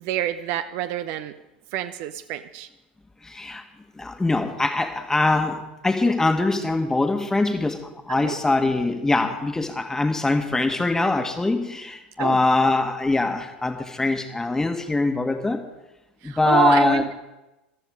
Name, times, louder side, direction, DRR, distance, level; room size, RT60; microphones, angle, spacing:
voice 1, 0.0-1.3 1.7-2.7 8.1-8.4 12.2-12.4 16.2-17.1, right 13 dB, 45° right, 11 dB, 0.7 m, -27 dB
voice 2, 3.2-3.6 3.9-15.6 16.2-17.0, left 2 dB, 10° left, 7 dB, 1.6 m, -23 dB
14.5 x 13.0 x 5.0 m, 0.97 s
figure-of-eight pair, 80°, 6 cm